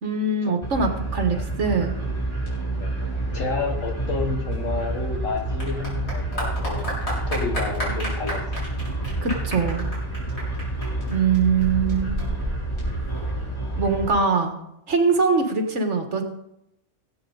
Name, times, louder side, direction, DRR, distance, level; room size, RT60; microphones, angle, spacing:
voice 1, 0.0-1.9 9.2-9.9 11.1-12.1 13.8-14.6 14.9-16.2, right 4 dB, 65° right, 4 dB, 1.9 m, -22 dB
sound 1, 0.6-14.1, right 1 dB, 20° left, 4.6 m, -29 dB
voice 2, 3.3-7.0 7.3-8.6, left 3 dB, 85° left, 3 dB, 1.9 m, -30 dB
Clapping / Applause, 4.5-13.5, equal, 55° left, 4.8 m, -33 dB
18.0 x 8.3 x 4.0 m, 0.82 s
omnidirectional pair, 1.3 m